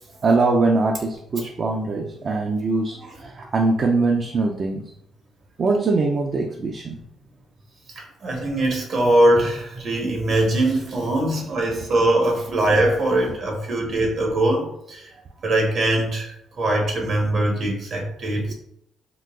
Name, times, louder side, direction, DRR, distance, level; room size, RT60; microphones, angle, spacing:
voice 1, 0.2-4.8 5.6-7.0 18.5-18.6, right 3 dB, 45° right, 1 dB, 0.4 m, -22 dB
voice 2, 8.0-15.1 15.4-18.5, right 1 dB, 60° right, 1 dB, 1.0 m, -21 dB
3.8 x 2.2 x 2.3 m, 0.76 s
cardioid pair, 90°, 0 cm